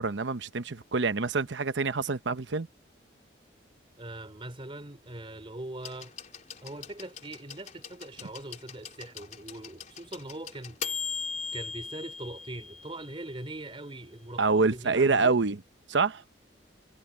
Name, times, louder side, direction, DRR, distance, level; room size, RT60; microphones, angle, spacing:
voice 1, 0.0-2.7 14.4-15.6 15.9-16.2, right 4 dB, 75° right, 0.9 m, -26 dB
voice 2, 4.0-6.1 6.6-10.8 11.5-15.4, right 1 dB, 30° right, 3.0 m, -41 dB
sound 1, 5.8-13.6 14.7-14.8, left 6 dB, 40° left, 3.7 m, -40 dB
head